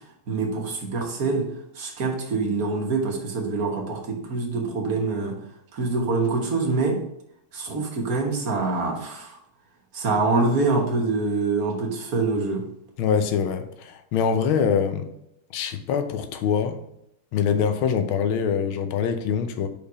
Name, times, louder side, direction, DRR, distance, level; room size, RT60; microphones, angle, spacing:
voice 1, 0.3-1.5 1.7-5.4 5.7-7.0 7.5-9.4 9.9-12.6, right 3 dB, 50° right, 1 dB, 1.5 m, -25 dB
voice 2, 13.0-15.1 15.5-16.8 17.3-19.7, left 7 dB, 80° left, 8 dB, 1.6 m, -24 dB
5.2 x 4.6 x 4.7 m, 0.77 s
omnidirectional pair, 2.3 m